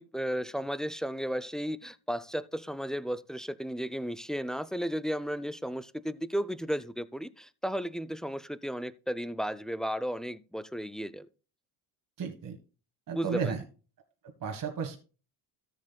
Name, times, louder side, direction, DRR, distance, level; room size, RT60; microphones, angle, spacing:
voice 1, 0.0-11.3 13.1-13.5, equal, ahead, 0.4 m, -34 dB
voice 2, 12.2-12.6 13.1-13.6 14.2-15.0, right 6 dB, 40° right, 1.5 m, -33 dB
13.5 x 7.7 x 2.2 m
supercardioid pair, 70°, 49 cm